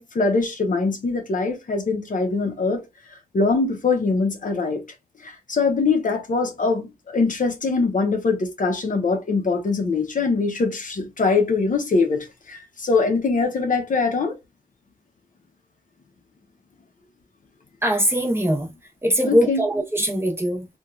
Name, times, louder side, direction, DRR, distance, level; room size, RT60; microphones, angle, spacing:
voice 1, 0.0-2.8 3.1-4.8 5.2-14.4 19.2-19.6, left 4 dB, 55° left, 0.6 m, -23 dB
voice 2, 17.8-18.7 19.0-20.7, equal, 15° right, 0.7 m, -21 dB
2.9 x 2.2 x 2.2 m
wide cardioid pair, 120°, 16 cm